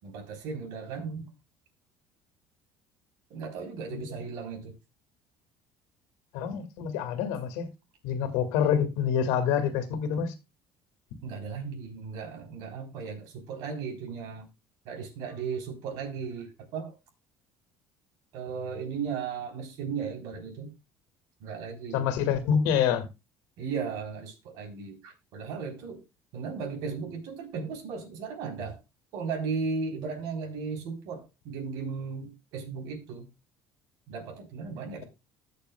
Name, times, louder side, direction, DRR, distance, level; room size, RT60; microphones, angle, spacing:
voice 1, 0.0-1.3 3.3-4.7 11.2-14.5 14.9-16.9 18.3-20.7 21.4-22.1 23.6-26.0 26.3-28.8 29.1-33.3 34.1-35.0, right 5 dB, 70° right, 3.8 m, -36 dB
voice 2, 6.3-7.7 8.0-10.3 21.9-23.1, left 8 dB, 90° left, 2.0 m, -27 dB
20.0 x 6.8 x 2.3 m
cardioid pair, 155°, 6 cm